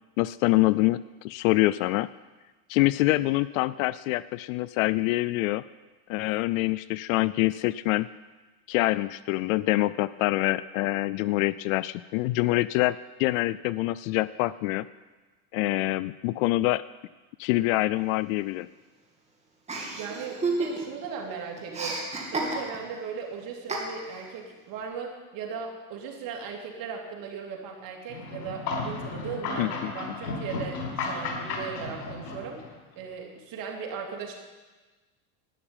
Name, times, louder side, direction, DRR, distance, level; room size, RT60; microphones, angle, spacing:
voice 1, 0.2-1.0 1.2-2.1 2.7-5.6 6.1-8.1 8.7-14.9 15.5-16.8 17.4-18.7 29.6-29.9, left 19 dB, 65° left, 17 dB, 0.5 m, -25 dB
Chuckle chortle, 19.7-21.1 21.3-23.0 23.7-24.3, right 3 dB, 15° right, 2.7 m, -31 dB
voice 2, 19.9-32.6 32.9-34.3, right 6 dB, 50° right, 1 dB, 3.0 m, -37 dB
sound 1, 28.1-32.8, left 3 dB, 90° left, 4.1 m, -34 dB
12.0 x 9.7 x 8.9 m, 1.2 s
supercardioid pair, 135°, 45 cm